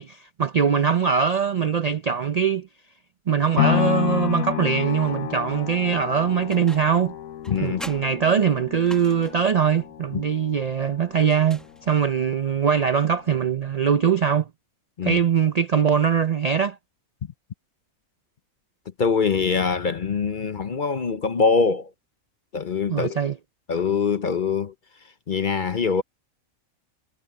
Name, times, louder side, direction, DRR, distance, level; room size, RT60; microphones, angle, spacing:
voice 1, 0.0-2.7 3.3-7.1 7.6-14.5 15.0-16.8 22.9-23.4, right 7 dB, 55° right, 0.4 m, -22 dB
sound 1, 3.6-11.7 12.2-12.3, left 12 dB, 90° left, 1.3 m, -30 dB
sound 2, 6.5-7.1 7.4-9.5 11.2-12.2, equal, ahead, 0.8 m, -43 dB
voice 2, 7.5-7.8 10.1-10.2 15.0-15.2 19.0-21.9 22.5-23.1 23.7-24.7 25.3-26.0, left 5 dB, 45° left, 0.8 m, -23 dB
omnidirectional pair, 1.4 m